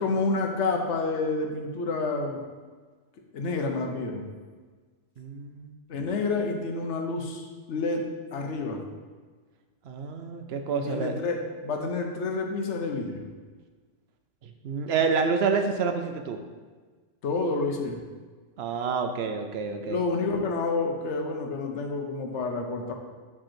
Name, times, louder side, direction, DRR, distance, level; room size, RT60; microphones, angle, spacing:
voice 1, 0.0-2.4 3.3-4.2 5.9-8.0 8.3-8.8 10.7-13.3 17.2-18.0 19.8-22.9, left 3 dB, 80° left, 3 dB, 1.1 m, -29 dB
voice 2, 5.2-5.7 9.8-11.1 14.4-16.4 18.6-20.0, right 5 dB, 70° right, 6 dB, 0.8 m, -28 dB
7.6 x 3.7 x 4.3 m, 1.5 s
omnidirectional pair, 1.2 m